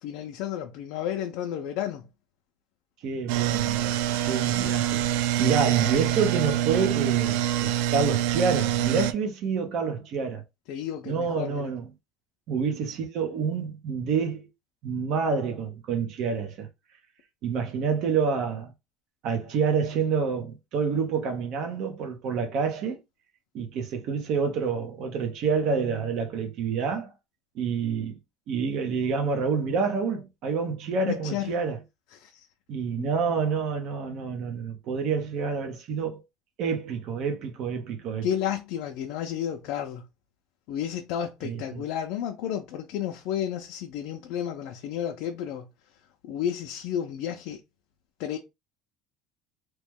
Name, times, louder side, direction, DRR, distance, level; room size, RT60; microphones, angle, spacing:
voice 1, 0.0-2.1 10.7-11.7 31.0-31.6 32.2-32.5 33.0-33.1 38.2-40.0 40.7-45.7 46.2-47.6 48.2-48.4, left 10 dB, 55° left, 0.5 m, -32 dB
voice 2, 3.0-10.4 11.1-11.9 12.5-14.5 14.8-16.7 17.4-18.7 19.2-23.0 23.5-27.1 27.6-28.2 28.5-31.8 32.7-36.2 36.6-38.3 41.4-41.8, right 5 dB, 45° right, 0.7 m, -28 dB
sound 1, 3.3-9.1, right 13 dB, 85° right, 0.3 m, -25 dB
3.0 x 2.2 x 3.5 m
cardioid pair, 175°, 0 cm